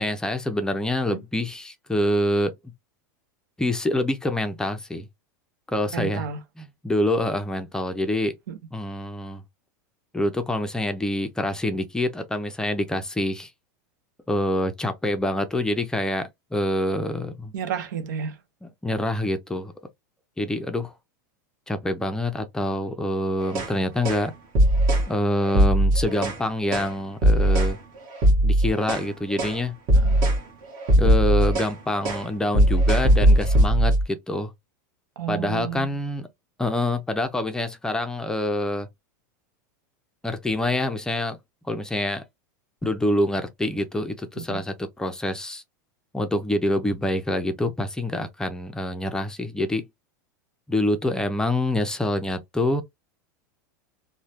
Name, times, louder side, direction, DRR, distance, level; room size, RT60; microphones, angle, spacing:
voice 1, 0.0-2.5 3.6-5.1 5.7-6.2 6.6-8.3 8.7-9.4 10.1-13.5 14.3-17.5 18.6-19.7 20.4-20.9 21.7-24.3 25.1-27.8 28.4-29.7 30.9-34.5 35.3-36.3 36.6-38.9 40.2-41.4 41.6-42.2 42.8-45.6 46.1-49.9 50.7-52.8, left 1 dB, 5° left, 0.4 m, -26 dB
voice 2, 5.9-6.4 8.5-8.6 17.5-18.4 29.9-30.3 35.2-36.0 44.4-44.6, right 8 dB, 80° right, 0.8 m, -32 dB
sound 1, 23.4-23.7 24.0-24.3 24.5-25.1 25.5-26.4 26.7-26.9 27.2-27.8 28.1-29.1 29.4-29.6 29.9-30.4 30.7-31.8 32.0-32.3 32.5-34.0, right 1 dB, 45° right, 1.3 m, -19 dB
3.1 x 2.1 x 2.8 m
supercardioid pair, 140°, 10 cm